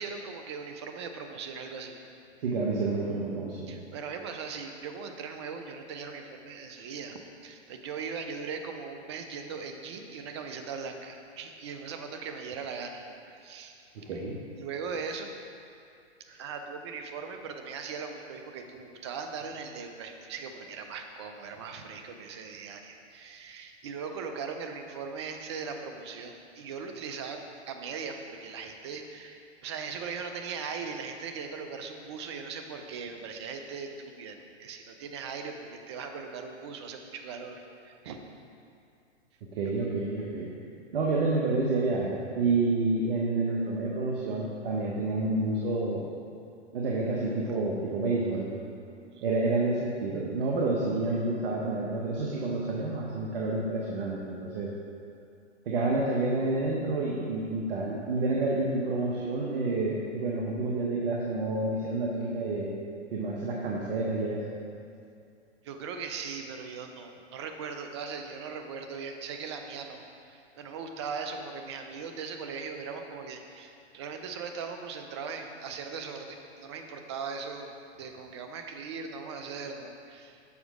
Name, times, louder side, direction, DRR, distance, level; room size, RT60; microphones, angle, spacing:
voice 1, 0.0-2.0 3.7-13.8 14.6-15.3 16.4-38.2 49.1-49.2 65.6-70.0 70.3-80.4, right 5 dB, 25° right, 5 dB, 0.4 m, -39 dB
voice 2, 2.4-3.7 13.9-14.4 16.3-16.4 39.4-40.5 40.9-46.1 46.7-48.5 49.2-54.7 55.7-62.8 63.1-64.4, right 3 dB, 50° right, -3 dB, 1.0 m, -29 dB
7.1 x 4.6 x 5.1 m, 2.5 s
hypercardioid pair, 135°, 36 cm